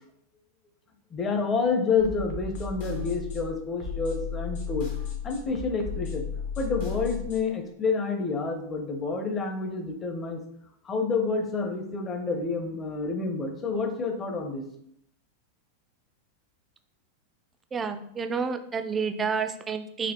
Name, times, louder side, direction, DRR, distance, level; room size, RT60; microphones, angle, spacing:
voice 1, 1.1-4.9 5.2-6.3 6.6-10.4 10.8-14.6, left 4 dB, 20° left, 5 dB, 0.6 m, -28 dB
sound 1, 2.0-7.4, left 7 dB, 65° left, 0.8 m, -34 dB
voice 2, 17.7-20.1, right 5 dB, 20° right, 8 dB, 0.3 m, -29 dB
4.1 x 2.7 x 2.9 m, 0.70 s
supercardioid pair, 140°, 0 cm